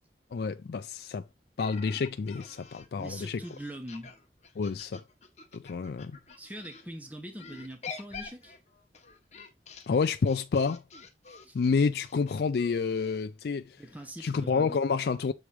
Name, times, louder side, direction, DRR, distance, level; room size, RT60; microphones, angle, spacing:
voice 1, 0.3-1.2 1.6-3.4 4.6-5.0 5.5-6.1 9.9-10.8 11.5-13.8 14.2-15.3, left 5 dB, 65° left, 0.4 m, -29 dB
sound 1, 1.6-6.8 7.4-13.2, left 5 dB, 40° left, 1.1 m, -47 dB
voice 2, 3.0-4.1 6.4-8.6 11.3-11.6 13.8-14.8, right 1 dB, 10° right, 1.0 m, -42 dB
7.2 x 3.2 x 4.7 m
head